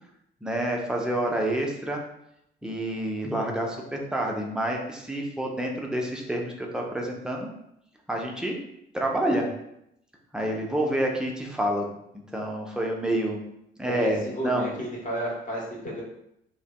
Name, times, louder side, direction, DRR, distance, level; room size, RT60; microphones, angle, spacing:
voice 1, 0.4-2.0 2.6-7.5 8.1-8.6 8.9-9.5 10.3-11.9 12.3-13.4 13.8-14.7, right 1 dB, ahead, 0 dB, 0.4 m, -28 dB
voice 2, 13.8-16.0, equal, 25° left, -3 dB, 1.0 m, -32 dB
2.5 x 2.2 x 2.2 m, 0.79 s
figure-of-eight pair, 45°, 31 cm